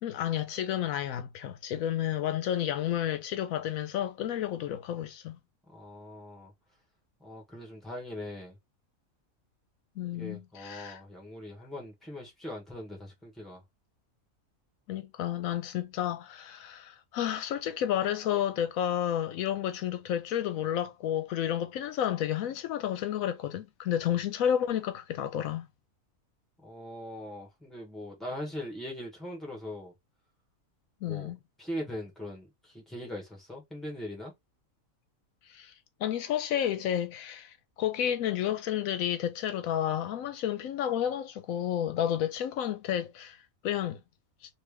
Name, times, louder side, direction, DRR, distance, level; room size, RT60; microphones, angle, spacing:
voice 1, 0.0-5.4 10.0-11.0 14.9-25.7 31.0-31.4 35.5-35.7 36.0-44.0, left 10 dB, 80° left, 1.0 m, -31 dB
voice 2, 5.7-6.5 7.2-8.6 10.0-13.6 24.0-24.1 26.6-29.9 31.0-31.3 31.6-34.3, left 1 dB, ahead, 1.3 m, -41 dB
3.3 x 2.7 x 3.3 m
omnidirectional pair, 1.5 m